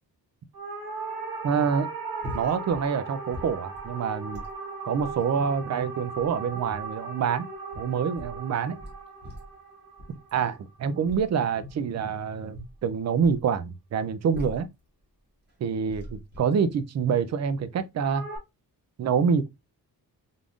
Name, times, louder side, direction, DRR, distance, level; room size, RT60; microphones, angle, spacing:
sound 1, 0.5-11.0 18.0-18.4, right 4 dB, 65° right, 1.4 m, -38 dB
voice 1, 1.4-1.9 2.3-4.4 4.8-7.5 7.8-8.8 10.3-14.7 15.6-18.2 19.0-19.5, right 6 dB, 45° right, 0.4 m, -26 dB
sound 2, 2.2-2.9 3.1-3.9 4.3-4.5 5.0-5.2 5.9-6.9 7.5-8.4 8.8-9.6 10.0-10.3 11.0-11.9 12.5-13.4 14.0-14.8 15.5-15.6 15.9-16.4, equal, 25° right, 1.6 m, -42 dB
3.7 x 3.5 x 2.4 m
wide cardioid pair, 145°, 39 cm